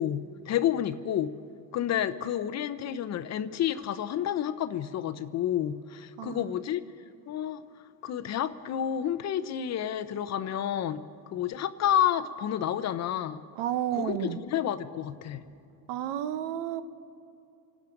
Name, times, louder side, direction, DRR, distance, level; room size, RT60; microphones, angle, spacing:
voice 1, 0.0-1.3 1.7-6.8 7.3-7.6 8.0-11.0 11.3-13.4 13.9-15.4, left 10 dB, 40° left, 13 dB, 0.7 m, -30 dB
voice 2, 6.2-6.5 13.6-14.4 15.9-16.8, right 11 dB, 70° right, 12 dB, 1.0 m, -31 dB
28.0 x 9.8 x 5.2 m, 2.6 s
supercardioid pair, 115°, 43 cm